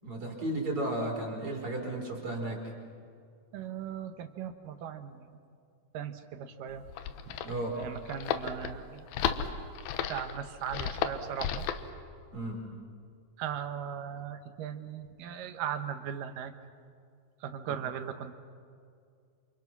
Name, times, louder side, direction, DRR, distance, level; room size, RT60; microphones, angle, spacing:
voice 1, 0.0-2.6 7.4-7.8 12.3-12.6 17.7-17.8, right 1 dB, 40° right, 0 dB, 5.1 m, -34 dB
voice 2, 3.5-5.3 5.9-6.8 7.3-7.4 7.7-9.1 10.1-11.7 13.4-16.5 17.4-18.3, right 9 dB, 70° right, 9 dB, 2.6 m, -38 dB
sound 1, 6.7-11.9, left 8 dB, 80° left, 2.9 m, -34 dB
28.5 x 27.5 x 6.0 m, 2.3 s
omnidirectional pair, 4.2 m